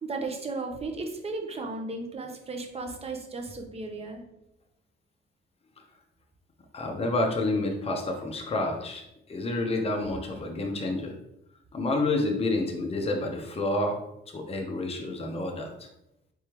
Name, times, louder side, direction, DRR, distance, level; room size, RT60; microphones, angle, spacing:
voice 1, 0.0-4.2, right 3 dB, 30° right, 3 dB, 0.9 m, -35 dB
voice 2, 6.7-11.1 11.7-14.0 14.3-15.7, left 2 dB, 30° left, 2 dB, 0.8 m, -29 dB
4.4 x 3.4 x 3.0 m, 0.83 s
cardioid pair, 90°, 20 cm